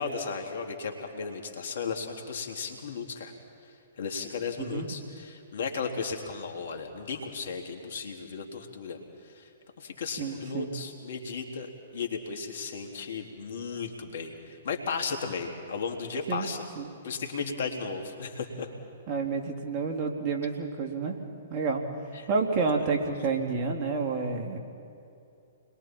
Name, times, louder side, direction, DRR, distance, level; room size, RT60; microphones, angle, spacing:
voice 1, 0.0-3.3 3.6-9.5 9.8-16.7 17.0-18.7 22.1-22.3 22.7-22.9, left 5 dB, 65° left, 3 dB, 2.8 m, -35 dB
voice 2, 10.2-10.7 16.3-16.5 16.8-16.9 19.1-21.2 21.5-21.8 22.3-24.6, right 4 dB, 35° right, 2 dB, 2.9 m, -29 dB
29.5 x 22.0 x 4.5 m, 2.6 s
hypercardioid pair, 125°, 0 cm